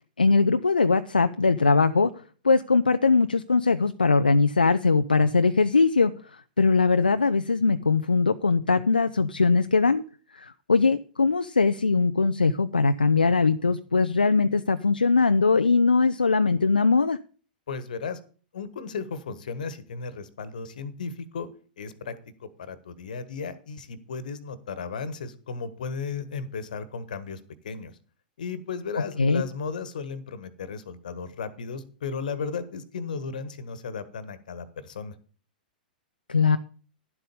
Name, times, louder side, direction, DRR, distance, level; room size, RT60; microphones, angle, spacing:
voice 1, 0.2-2.1 2.4-6.1 6.6-10.0 10.4-17.2 29.2-29.4 36.3-36.6, left 4 dB, 80° left, 10 dB, 0.5 m, -21 dB
voice 2, 17.7-18.2 18.5-21.5 21.8-22.2 22.4-27.9 28.4-35.1, left 5 dB, 60° left, 16 dB, 1.4 m, -35 dB
11.0 x 7.9 x 5.3 m, 0.40 s
figure-of-eight pair, 100°, 5 cm